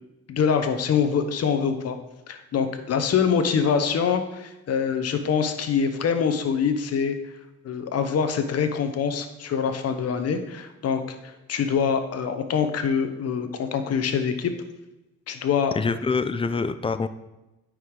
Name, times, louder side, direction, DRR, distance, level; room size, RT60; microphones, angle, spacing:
voice 1, 0.3-2.0 2.3-7.2 7.6-14.5 15.3-15.7, left 6 dB, 55° left, 8 dB, 0.9 m, -24 dB
voice 2, 15.7-17.1, left 4 dB, 20° left, 12 dB, 0.4 m, -25 dB
9.0 x 4.8 x 3.7 m, 0.98 s
cardioid pair, 90°, 30 cm